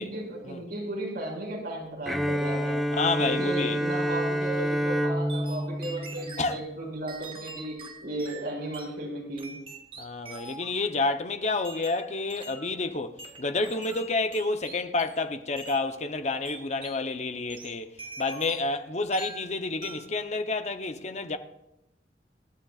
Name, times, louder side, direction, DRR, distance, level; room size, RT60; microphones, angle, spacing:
voice 1, 0.0-2.8 3.2-9.6, right 1 dB, 65° right, 5.1 m, -35 dB
Bowed string instrument, 2.1-6.9, equal, ahead, 1.0 m, -29 dB
voice 2, 2.9-3.8 6.4-6.6 10.0-17.9 18.2-21.4, left 3 dB, 40° left, 0.8 m, -29 dB
sound 1, 5.3-6.5 7.1-8.9 9.4-10.8 11.6-12.7 13.2-15.3 15.6-15.8 16.4-17.0 17.5-18.8 19.1-19.5 19.8-20.2, right 3 dB, 30° right, 1.6 m, -44 dB
26.0 x 12.0 x 2.4 m
head